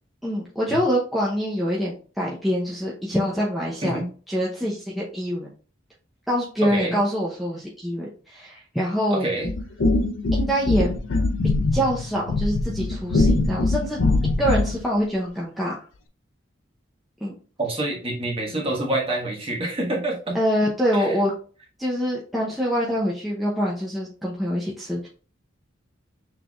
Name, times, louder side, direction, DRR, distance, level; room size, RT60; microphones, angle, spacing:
voice 1, 0.2-4.0 4.3-5.5 6.3-9.3 10.3-10.9 11.7-14.0 14.4-15.8 17.2-17.3 20.3-21.3 21.8-25.1, equal, ahead, -6 dB, 0.7 m, -25 dB
voice 2, 9.1-9.5 17.6-20.4 20.9-21.1, right 1 dB, 25° right, -3 dB, 1.3 m, -27 dB
sound 1, 9.4-14.8, left 2 dB, 75° left, 0.5 m, -22 dB
6.1 x 3.3 x 2.3 m, 0.40 s
head